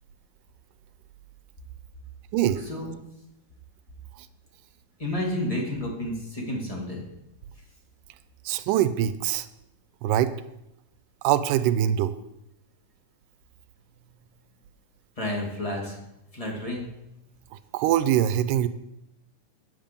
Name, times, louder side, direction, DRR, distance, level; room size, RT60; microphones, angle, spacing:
voice 1, 2.6-3.0 5.0-7.0 15.2-16.0 16.3-16.9, left 1 dB, 15° left, -2 dB, 1.7 m, -31 dB
voice 2, 8.5-9.5 10.0-10.3 11.2-12.1 17.7-18.7, right 11 dB, 85° right, 13 dB, 2.1 m, -23 dB
8.8 x 7.6 x 5.2 m, 0.85 s
omnidirectional pair, 3.7 m